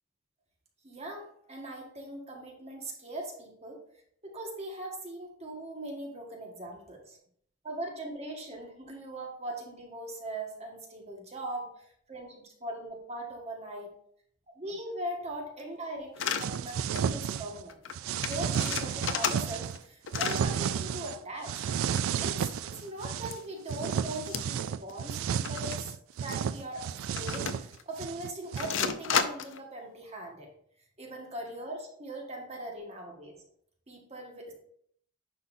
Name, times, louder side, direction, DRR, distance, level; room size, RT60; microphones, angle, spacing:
voice 1, 0.8-3.8 4.2-7.2 7.6-13.9 14.5-17.8 18.3-21.7 22.2-30.5 31.0-33.4 33.9-34.5, right 1 dB, 30° right, 1 dB, 1.6 m, -40 dB
sound 1, 16.2-16.5 16.9-17.1 17.4-17.5 17.7-17.9 18.2-19.8 20.1-20.5 21.8-22.8 23.3-23.4 24.3-24.6 24.9-25.0 25.5-25.8 26.3-26.4 27.2-27.8 28.6-29.6, left 7 dB, 65° left, 0.5 m, -32 dB
sound 2, 16.4-17.6 17.9-19.8 20.1-21.2 21.4-23.4 23.7-28.8, right 8 dB, 90° right, 0.3 m, -32 dB
10.0 x 5.6 x 2.7 m, 0.65 s
head